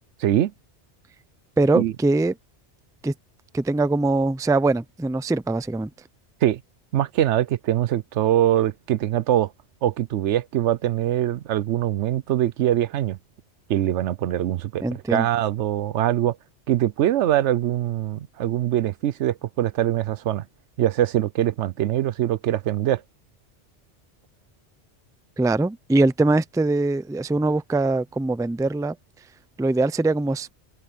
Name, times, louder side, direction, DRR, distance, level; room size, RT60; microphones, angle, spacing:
voice 1, 0.2-0.5 1.7-1.9 6.4-6.6 6.9-9.5 9.8-13.2 13.7-16.4 16.7-20.5 20.8-23.0, right 12 dB, 80° right, 0.9 m, -23 dB
voice 2, 1.6-2.3 3.0-3.1 3.5-5.9 14.8-15.3 25.4-29.0 29.6-30.5, right 2 dB, 5° right, 0.4 m, -22 dB
omnidirectional pair, 1.2 m